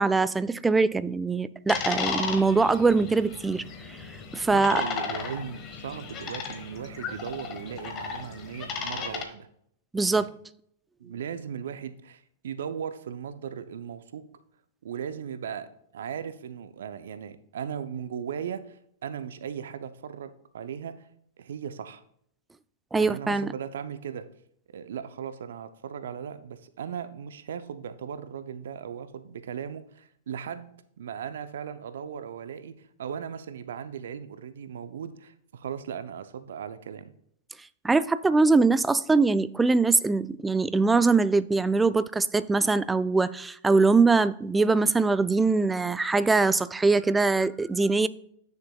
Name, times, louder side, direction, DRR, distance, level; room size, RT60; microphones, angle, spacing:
voice 1, 0.0-3.6 4.3-4.8 9.9-10.3 22.9-23.5 37.8-48.1, right 3 dB, 10° right, 0.3 m, -22 dB
sound 1, 1.7-9.2, left 5 dB, 35° left, 1.3 m, -35 dB
voice 2, 4.5-9.5 10.1-10.3 11.0-14.2 14.8-21.1 21.4-22.0 22.9-24.3 24.7-37.1, right 8 dB, 70° right, 0.5 m, -37 dB
9.5 x 6.5 x 2.3 m
figure-of-eight pair, 100°, 0 cm